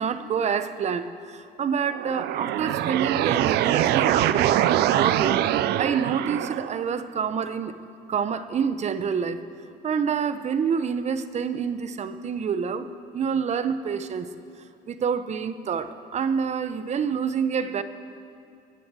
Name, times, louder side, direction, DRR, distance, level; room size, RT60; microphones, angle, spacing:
voice 1, 0.0-7.8 8.1-9.4 9.8-12.9 13.1-14.3 14.9-17.8, right 6 dB, 40° right, 12 dB, 0.8 m, -27 dB
sound 1, 1.9-6.8, right 13 dB, 75° right, 0.5 m, -23 dB
20.5 x 7.7 x 8.2 m, 2.4 s
cardioid pair, 110°, 17 cm